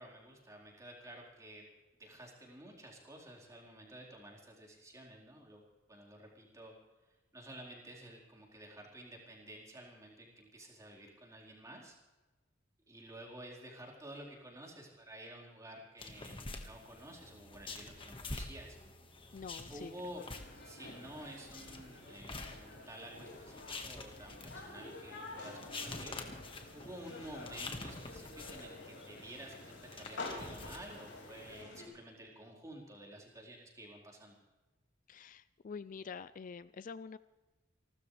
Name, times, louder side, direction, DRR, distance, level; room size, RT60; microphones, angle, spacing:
voice 1, 0.0-1.6 2.0-5.6 5.9-6.7 7.3-12.0 12.9-18.8 19.7-20.2 20.6-26.2 26.7-34.4, right 1 dB, 20° right, -2 dB, 4.4 m, -51 dB
sound 1, 16.0-31.6, left 3 dB, 30° left, 1.6 m, -48 dB
voice 2, 19.3-19.9 35.1-37.2, left 5 dB, 45° left, 15 dB, 0.4 m, -46 dB
sound 2, 20.2-31.9, left 2 dB, 70° left, 5.3 m, -49 dB
29.5 x 13.0 x 3.3 m, 1.2 s
head